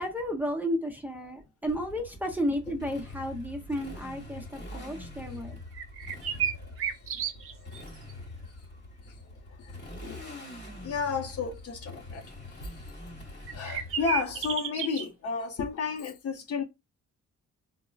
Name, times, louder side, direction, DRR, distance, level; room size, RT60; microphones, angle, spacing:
voice 1, 0.0-5.6, equal, 5° right, 0.6 m, -32 dB
Motorcycle, 1.7-14.5, left 2 dB, 35° left, 1.2 m, -44 dB
sound 1, 5.7-7.8 8.1-8.2 13.5-15.1, right 9 dB, 45° right, 0.5 m, -32 dB
voice 2, 6.0-7.9 9.0-9.2 9.5-10.4 10.8-12.8 13.5-16.6, left 5 dB, 50° left, 0.7 m, -34 dB
3.6 x 2.0 x 2.3 m
cardioid pair, 90°, 30 cm